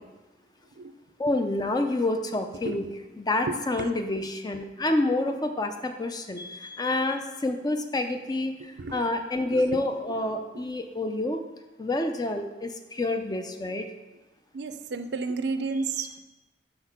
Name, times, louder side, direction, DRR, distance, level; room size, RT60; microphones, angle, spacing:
voice 1, 1.2-2.9 3.2-11.4 11.8-13.9 15.7-16.2, left 2 dB, 25° left, 6 dB, 0.5 m, -28 dB
voice 2, 14.5-16.2, right 4 dB, 70° right, 9 dB, 0.5 m, -31 dB
6.3 x 3.9 x 5.9 m, 1.1 s
head